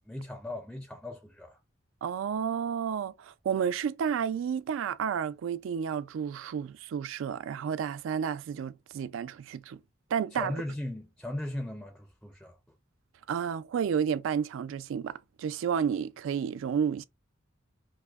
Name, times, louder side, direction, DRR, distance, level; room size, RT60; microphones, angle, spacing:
voice 1, 0.0-1.6 10.3-12.6, left 1 dB, 5° left, 0.4 m, -38 dB
voice 2, 2.0-9.8 10.1-10.5 13.3-17.0, right 7 dB, 80° right, 0.3 m, -31 dB
4.6 x 2.1 x 2.3 m
head